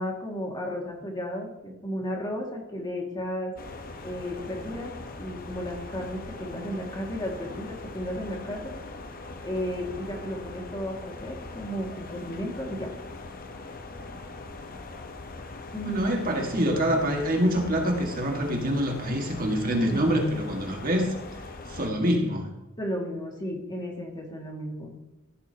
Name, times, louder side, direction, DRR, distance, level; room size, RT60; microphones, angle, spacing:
voice 1, 0.0-3.5 4.0-4.9 5.2-8.7 9.4-12.9 15.7-16.2 19.7-20.0 22.8-24.9, equal, 20° left, 0 dB, 2.1 m, -33 dB
sound 1, 3.6-21.9, left 2 dB, 45° left, 1.0 m, -41 dB
voice 2, 15.8-21.1 21.7-22.5, equal, 40° right, 1 dB, 1.8 m, -26 dB
15.0 x 8.9 x 2.9 m, 1.0 s
head